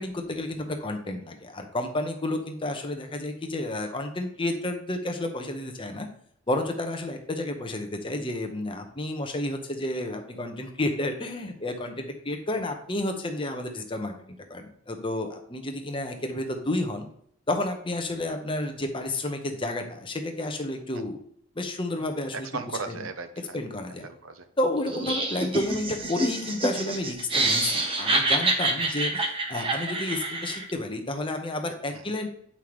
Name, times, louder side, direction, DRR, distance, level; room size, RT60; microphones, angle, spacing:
voice 1, 0.0-6.1 6.5-17.1 17.5-21.2 21.6-22.5 22.9-23.0 23.5-24.1 24.6-32.3, left 1 dB, 25° left, 4 dB, 0.9 m, -31 dB
voice 2, 22.3-23.6 23.9-24.4 28.8-28.9 31.9-32.1, right 4 dB, 85° right, 9 dB, 0.8 m, -37 dB
Laughter, 24.9-30.7, right 2 dB, 25° right, 1.0 m, -27 dB
8.6 x 5.6 x 3.1 m, 0.66 s
head